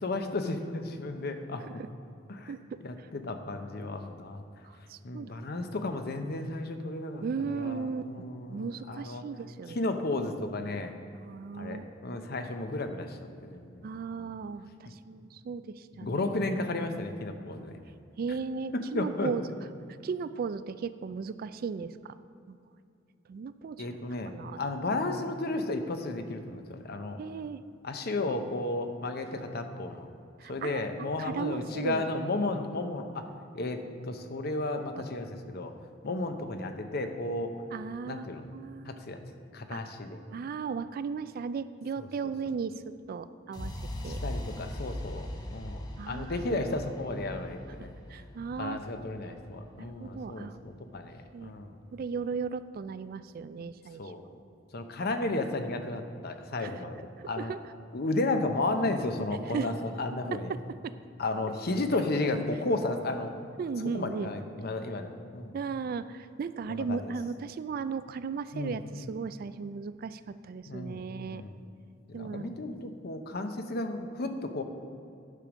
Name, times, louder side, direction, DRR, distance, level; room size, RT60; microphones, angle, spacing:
voice 1, 0.0-1.8 2.3-2.5 2.8-4.4 5.0-9.2 9.7-10.9 11.5-13.9 14.1-14.3 16.0-17.8 18.7-19.3 23.8-27.2 27.8-30.1 30.5-33.3 33.5-35.7 36.0-37.5 38.1-38.4 38.8-39.2 39.5-40.2 42.0-42.1 44.0-47.9 48.6-51.8 54.0-54.2 54.7-57.5 57.9-60.5 61.2-63.3 63.9-65.6 66.7-67.1 68.5-68.8 70.7-71.6 72.1-74.6, left 2 dB, 55° left, 6 dB, 0.7 m, -33 dB
voice 2, 2.5-2.8 4.9-5.6 7.2-9.9 11.1-11.8 13.8-16.2 18.2-19.4 20.0-22.2 22.5-22.6 23.3-23.9 24.3-24.6 27.2-27.6 30.4-32.0 37.7-38.3 38.5-39.0 39.7-39.9 40.3-42.8 43.1-43.7 44.0-44.2 46.0-46.6 47.8-48.8 49.8-50.6 51.3-51.5 51.9-54.0 56.6-56.8 57.4-57.6 59.5-59.7 60.3-60.4 60.8-60.9 63.6-64.3 65.5-71.4 72.1-72.8, right 5 dB, 50° right, 13 dB, 0.3 m, -36 dB
sound 1, 43.5-51.5, left 1 dB, 20° left, 0.7 m, -41 dB
10.0 x 5.1 x 6.2 m, 2.5 s
head